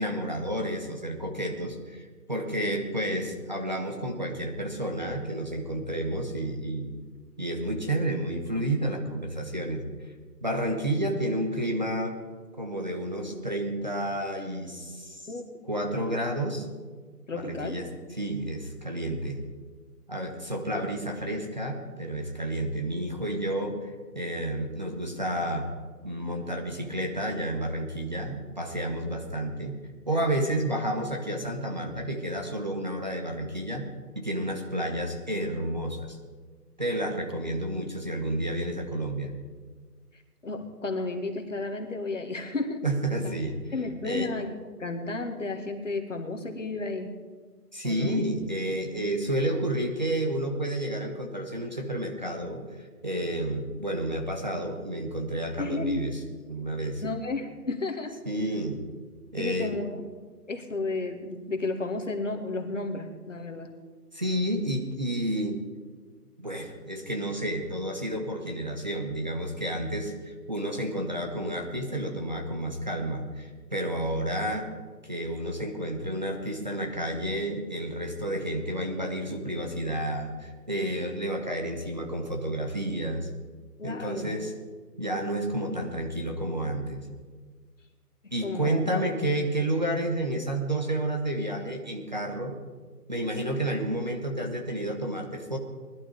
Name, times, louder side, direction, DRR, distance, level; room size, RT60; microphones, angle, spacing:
voice 1, 0.0-6.9 7.4-9.8 10.4-12.2 12.6-15.2 15.6-16.7 17.3-19.4 20.1-25.7 26.0-29.7 30.1-33.9 34.1-36.2 36.8-39.3 42.8-43.6 44.0-44.3 47.7-52.6 53.0-56.2 56.5-57.0 58.3-58.8 59.3-59.8 64.1-65.6 66.4-74.7 75.0-83.3 83.8-84.5 85.0-87.0 88.3-92.5 93.1-95.6, right 1 dB, 30° right, 3 dB, 1.1 m, -30 dB
voice 2, 17.3-17.8 40.4-42.9 43.2-43.3 43.7-44.5 44.8-47.2 47.8-48.2 55.6-56.1 56.8-58.2 59.4-60.0 60.5-63.7 83.8-84.4 88.4-89.2, left 3 dB, 50° left, 4 dB, 2.0 m, -33 dB
20.0 x 12.0 x 5.0 m, 1.5 s
figure-of-eight pair, 175°, 47 cm